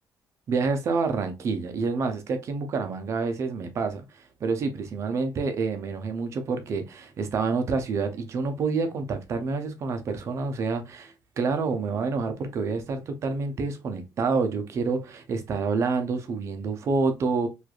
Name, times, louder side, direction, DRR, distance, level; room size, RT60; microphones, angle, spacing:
voice 1, 0.5-4.0 4.4-17.5, right 4 dB, 40° right, 0.5 m, -28 dB
3.1 x 2.4 x 2.3 m
cardioid pair, 175°, 8 cm